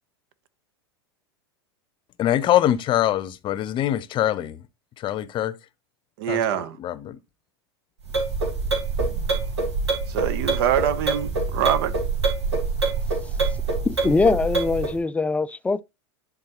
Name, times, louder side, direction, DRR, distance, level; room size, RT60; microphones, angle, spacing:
voice 1, 2.2-4.7 5.0-5.6 6.3-7.2, left 12 dB, 35° left, 0.7 m, -24 dB
voice 2, 6.2-6.8 10.1-11.9, right 10 dB, 60° right, 0.9 m, -24 dB
sound 1, 8.0-15.0, right 4 dB, 80° right, 2.5 m, -25 dB
voice 3, 13.8-15.8, left 3 dB, 10° left, 0.3 m, -22 dB
10.5 x 4.1 x 2.9 m
hypercardioid pair, 95°, 14 cm